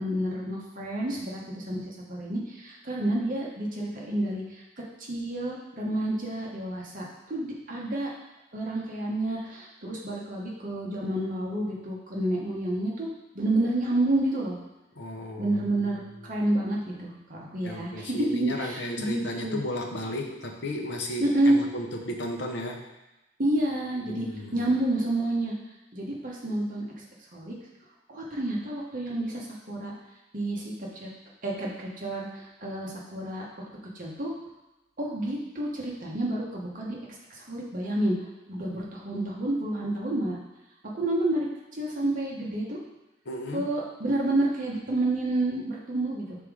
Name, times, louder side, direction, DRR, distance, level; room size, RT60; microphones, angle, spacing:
voice 1, 0.0-4.6 5.0-8.1 8.5-13.1 13.3-14.6 15.4-19.6 21.2-21.6 23.4-24.3 24.5-25.5 25.9-26.8 27.3-27.5 28.1-29.9 30.3-31.1 31.4-33.4 33.9-34.3 35.0-37.0 37.3-38.1 38.5-40.4 40.9-41.5 41.7-42.8 43.5-46.4, right 1 dB, 45° right, -3 dB, 1.2 m, -29 dB
voice 2, 15.0-15.6 17.6-22.8 24.1-24.7 43.3-43.7, left 1 dB, 60° left, 2 dB, 0.8 m, -34 dB
5.9 x 3.6 x 4.9 m, 1.0 s
head